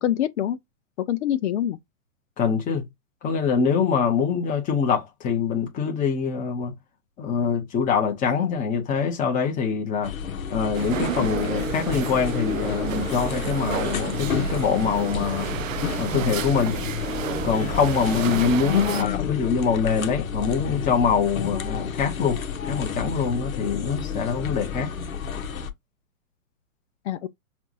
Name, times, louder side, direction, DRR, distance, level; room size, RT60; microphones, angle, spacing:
voice 1, 0.0-0.6 1.1-1.8 18.6-19.3 27.0-27.3, left 11 dB, 55° left, 0.6 m, -25 dB
voice 2, 2.4-2.8 3.2-6.7 7.2-10.1 10.5-15.5 16.0-16.8 17.4-24.9, left 6 dB, 20° left, 1.2 m, -24 dB
sound 1, 10.0-25.7, left 6 dB, 80° left, 1.1 m, -31 dB
sound 2, 10.7-19.0, right 10 dB, 70° right, 0.6 m, -31 dB
5.8 x 2.5 x 2.7 m
hypercardioid pair, 130°, 41 cm